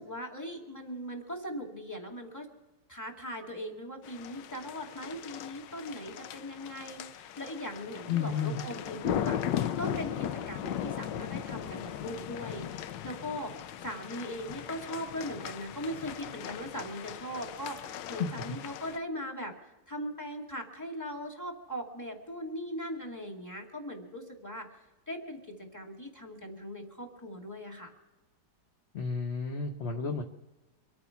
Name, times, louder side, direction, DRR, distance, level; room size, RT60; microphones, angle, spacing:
voice 1, 0.0-2.5 2.9-13.5 13.8-19.5 19.9-24.7 25.1-25.4 25.7-27.9, equal, 10° left, 1 dB, 2.2 m, -39 dB
sound 1, 4.0-19.0, left 10 dB, 85° left, 1.4 m, -38 dB
voice 2, 8.1-8.6 18.2-18.3 28.9-30.2, left 6 dB, 40° left, 3 dB, 1.2 m, -31 dB
25.0 x 8.7 x 5.9 m, 1.1 s
omnidirectional pair, 1.9 m